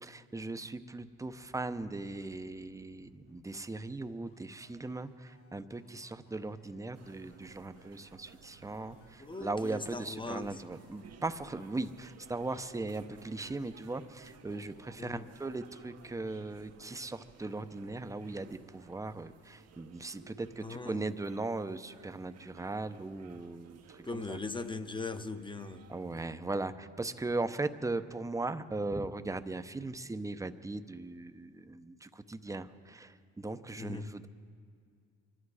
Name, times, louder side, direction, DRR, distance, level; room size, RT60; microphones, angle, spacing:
voice 1, 0.0-24.4 25.9-34.3, right 2 dB, 10° right, 11 dB, 0.7 m, -38 dB
sound 1, 1.0-11.1 11.5-12.1 12.5-16.3, left 5 dB, 80° left, 3.4 m, -66 dB
sound 2, 6.9-26.3, right 7 dB, 60° right, 1.0 m, -58 dB
voice 2, 9.2-10.6 15.0-15.2 20.6-21.1 24.0-25.8 33.8-34.1, left 3 dB, 15° left, 10 dB, 0.9 m, -40 dB
24.5 x 12.0 x 4.9 m, 2.3 s
cardioid pair, 85°, 29 cm